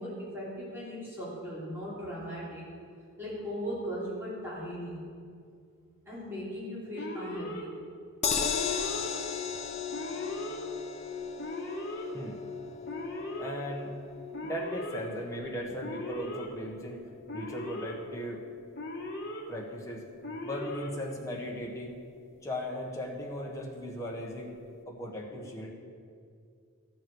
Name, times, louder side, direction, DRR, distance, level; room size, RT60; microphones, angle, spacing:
voice 1, 0.0-2.7 3.2-5.0 6.1-7.7, equal, 10° right, -9 dB, 3.5 m, -38 dB
Alarm, 7.0-7.6 8.4-9.1 9.9-10.6 11.4-12.0 12.8-13.5 14.3-15.0 15.8-16.5 17.3-17.9 18.7-19.4 20.2-20.9, left 1 dB, 50° left, 1.6 m, -38 dB
sound 1, 8.2-20.5 20.8-20.9 21.2-21.3, left 6 dB, 30° left, 0.6 m, -37 dB
voice 2, 13.4-13.9 14.4-18.4 19.5-20.0 20.4-22.0 22.4-25.7, equal, 15° left, -1 dB, 1.3 m, -38 dB
13.5 x 7.6 x 6.3 m, 2.3 s
head